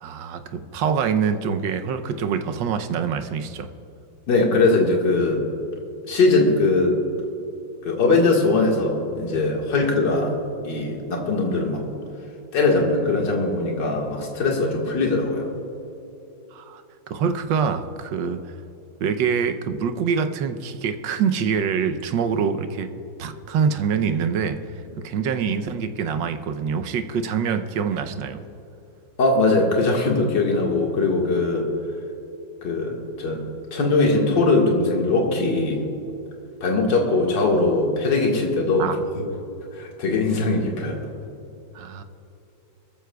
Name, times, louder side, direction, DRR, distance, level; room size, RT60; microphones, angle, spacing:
voice 1, 0.0-3.7 16.5-18.4 19.0-22.9 23.2-24.6 25.0-28.4 38.8-39.0 41.7-42.0, right 6 dB, 75° right, 8 dB, 1.5 m, -25 dB
voice 2, 4.3-5.4 6.1-7.0 7.8-10.4 10.6-11.8 12.5-15.5 29.2-31.7 32.6-33.4 33.7-35.8 36.6-38.9 39.2-39.3 39.7-41.0, left 3 dB, 65° left, -1 dB, 2.4 m, -21 dB
22.5 x 14.0 x 2.3 m, 2.9 s
omnidirectional pair, 2.1 m